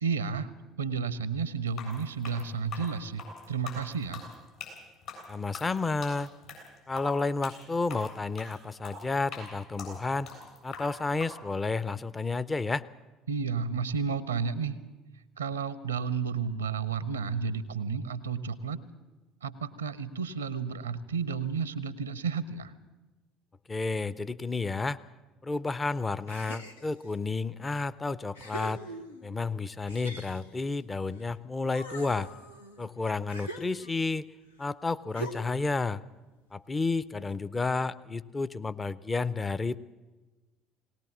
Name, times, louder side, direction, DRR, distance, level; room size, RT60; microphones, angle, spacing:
voice 1, 0.0-0.5 0.8-3.2 3.5-4.2 13.3-14.8 15.4-18.8 19.4-22.7, right 6 dB, 85° right, 18 dB, 0.7 m, -32 dB
sound 1, 1.7-11.3, left 4 dB, 65° left, 7.9 m, -43 dB
voice 2, 5.3-6.3 6.9-10.3 10.6-12.8 23.7-25.0 25.4-28.8 29.2-32.3 32.8-34.3 34.6-36.0 36.5-39.8, left 3 dB, 20° left, 16 dB, 0.7 m, -31 dB
sound 2, 26.3-27.1 27.8-27.9 28.3-29.4 29.9-31.3 31.6-34.2 35.1-35.7, right 1 dB, 85° left, 0.9 m, -43 dB
19.5 x 19.0 x 7.4 m, 1.2 s
figure-of-eight pair, 60°, 0 cm